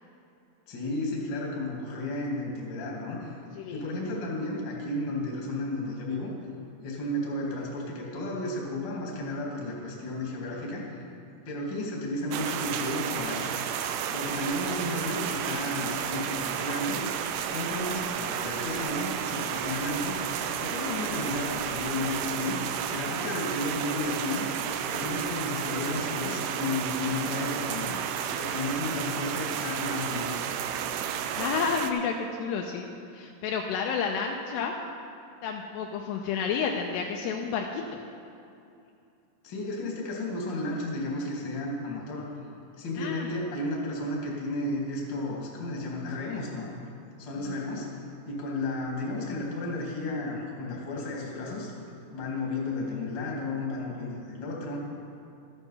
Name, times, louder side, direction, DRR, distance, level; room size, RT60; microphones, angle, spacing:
voice 1, 0.7-3.4 3.7-6.3 6.8-10.8 11.4-13.6 14.1-17.0 17.5-20.2 20.6-22.6 22.9-24.5 24.9-28.0 28.3-30.4 39.4-42.3 42.8-46.7 47.2-47.9 48.3-51.7 52.1-54.8, left 2 dB, 45° left, -3 dB, 1.6 m, -33 dB
sound 1, 12.3-31.9, right 8 dB, 85° right, 2.3 m, -32 dB
voice 2, 31.3-32.9 33.1-34.7 35.4-37.8 43.0-43.3 47.5-47.6, left 6 dB, 80° left, 2 dB, 2.5 m, -30 dB
13.0 x 9.1 x 5.6 m, 2.6 s
omnidirectional pair, 5.2 m